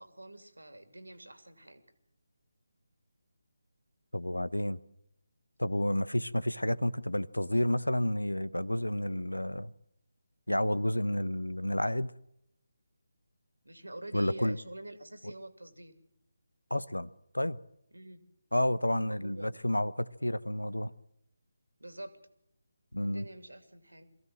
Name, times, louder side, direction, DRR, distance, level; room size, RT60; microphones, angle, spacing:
voice 1, 0.0-1.8 13.6-15.9 17.9-18.2 19.1-19.5 21.8-22.2 23.0-24.1, right 1 dB, 80° right, 2.7 m, -46 dB
voice 2, 4.1-4.8 5.6-9.7 10.5-12.1 14.1-14.6 15.2-15.3 16.7-17.1 17.3-17.6 18.5-20.9 22.9-23.2, left 1 dB, 85° left, 0.9 m, -30 dB
22.0 x 15.5 x 7.5 m
figure-of-eight pair, 150°, 0 cm